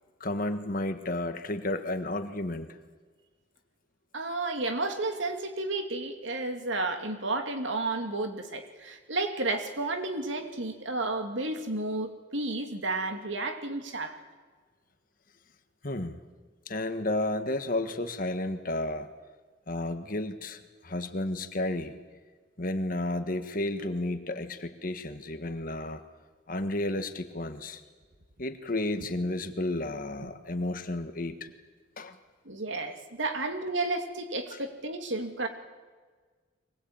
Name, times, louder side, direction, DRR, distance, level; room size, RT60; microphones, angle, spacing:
voice 1, 0.2-2.7 15.8-16.2 16.7-19.1 19.7-22.0 22.6-26.0 26.5-27.8 28.4-31.5 32.0-32.2 34.5-34.6, left 1 dB, 45° left, 8 dB, 1.6 m, -32 dB
voice 2, 4.1-14.2 32.4-35.5, right 2 dB, 70° right, 5 dB, 2.7 m, -32 dB
23.5 x 19.5 x 8.9 m, 1.4 s
head